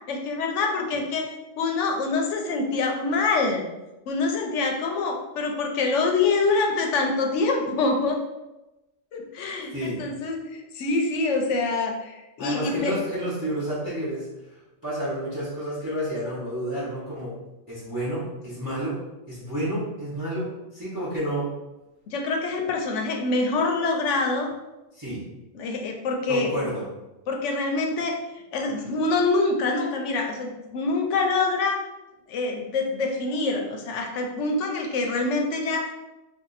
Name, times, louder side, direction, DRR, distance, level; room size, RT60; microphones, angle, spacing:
voice 1, 0.1-1.3 1.6-3.6 4.1-8.2 9.1-13.0 22.1-24.5 25.5-26.8 27.3-28.2 28.5-31.8 32.3-35.9, left 3 dB, 90° left, 2 dB, 0.9 m, -25 dB
voice 2, 9.7-10.1 12.4-14.3 14.8-17.3 17.7-19.0 19.3-21.5 24.9-25.2 26.3-26.9, right 1 dB, 20° right, -9 dB, 0.8 m, -30 dB
2.7 x 2.3 x 3.9 m, 1.0 s
omnidirectional pair, 1.2 m